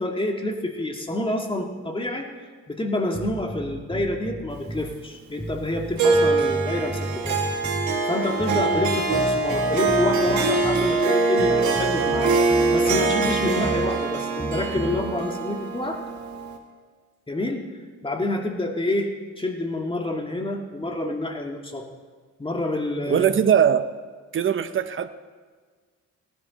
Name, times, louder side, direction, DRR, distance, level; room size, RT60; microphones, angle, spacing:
voice 1, 0.0-2.3 2.7-7.4 8.1-16.0 17.3-17.6 18.0-19.1 19.4-21.9 22.4-23.3, left 1 dB, 15° left, 2 dB, 2.0 m, -28 dB
sound 1, 3.1-4.9 5.4-8.0 8.4-11.0 11.4-13.9 14.4-15.0, equal, ahead, 0.7 m, -33 dB
Harp, 6.0-16.6, right 3 dB, 70° right, 2.1 m, -23 dB
voice 2, 23.1-23.9 24.3-25.1, right 8 dB, 40° right, 12 dB, 0.8 m, -20 dB
17.5 x 12.5 x 4.2 m, 1.5 s
cardioid pair, 90°, 30 cm